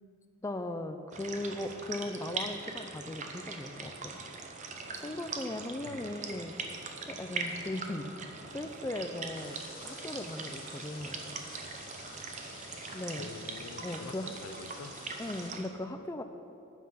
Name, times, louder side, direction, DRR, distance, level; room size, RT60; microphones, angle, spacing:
voice 1, 0.4-4.2 4.9-6.6 6.8-9.6 9.8-11.2 12.9-13.2 13.8-14.3 15.2-16.2, left 1 dB, 15° left, 7 dB, 0.4 m, -38 dB
sound 1, 1.1-15.7, right 4 dB, 35° right, 0.8 m, -41 dB
voice 2, 5.8-6.2 13.2-14.9, left 4 dB, 80° left, 11 dB, 0.5 m, -46 dB
sound 2, 9.3-15.5, left 4 dB, 45° left, 2.0 m, -51 dB
9.3 x 7.6 x 5.7 m, 2.8 s
head